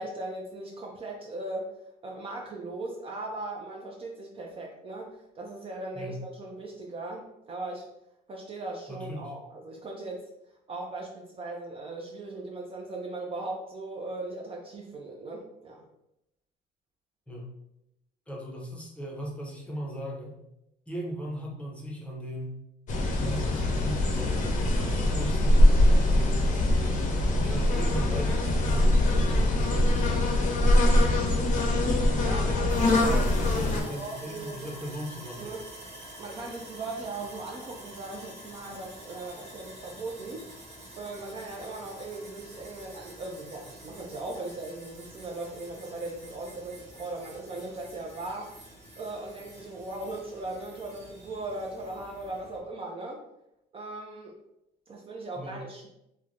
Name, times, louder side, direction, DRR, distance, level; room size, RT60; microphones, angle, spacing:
voice 1, 0.0-1.7 2.0-7.9 8.3-10.2 10.7-15.8 32.2-34.7 35.4-35.6 36.2-40.5 41.0-48.5 49.0-53.2 53.7-54.3 54.9-55.9, right 2 dB, 35° right, 0 dB, 0.4 m, -38 dB
voice 2, 8.9-9.3 17.3-17.5 18.3-20.4 20.9-22.6 23.1-26.3 27.4-31.3 32.5-35.6 55.4-55.6, equal, 5° left, -2 dB, 0.6 m, -38 dB
sound 1, 22.9-33.8, left 1 dB, 50° left, 0.6 m, -23 dB
Sawing, 32.7-52.6, right 1 dB, 50° right, 1.1 m, -47 dB
3.1 x 2.1 x 2.4 m, 0.84 s
cardioid pair, 110°, 17 cm